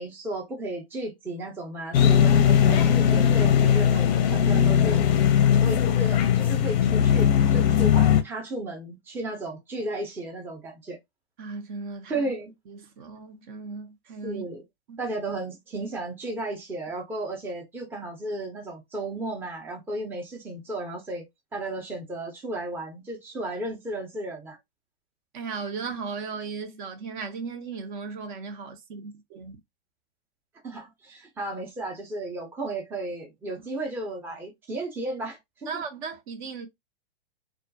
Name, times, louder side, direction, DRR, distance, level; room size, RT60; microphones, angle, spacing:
voice 1, 0.0-5.0 5.6-11.0 12.1-12.5 14.2-14.6 15.0-21.3 21.5-24.6 30.6-35.8, right 2 dB, 5° right, 0.5 m, -34 dB
Lambo Start Up Sound, 1.9-8.2, left 8 dB, 45° left, 0.5 m, -19 dB
voice 2, 11.4-12.3 12.7-14.4 14.9-15.0 25.3-29.6 35.7-36.7, right 5 dB, 50° right, 0.7 m, -36 dB
2.3 x 2.1 x 2.6 m
hypercardioid pair, 120°, 31 cm